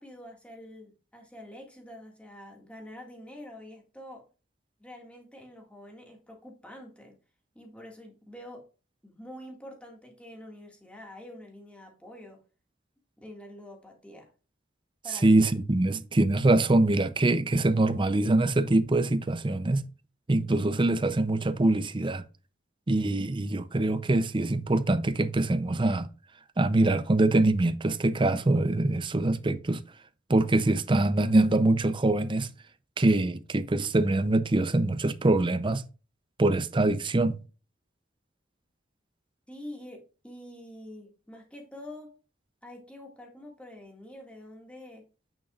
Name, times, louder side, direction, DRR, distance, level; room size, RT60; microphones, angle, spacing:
voice 1, 0.0-4.3 4.8-7.1 7.5-8.6 9.0-12.4 13.2-14.3 15.0-15.4 39.5-42.1 42.6-45.1, left 1 dB, 5° left, 2.0 m, -46 dB
voice 2, 15.2-19.8 20.3-22.2 22.9-26.1 26.6-29.8 30.3-32.5 33.0-35.8 36.4-37.4, right 2 dB, 25° right, 0.6 m, -24 dB
9.0 x 6.4 x 2.4 m
head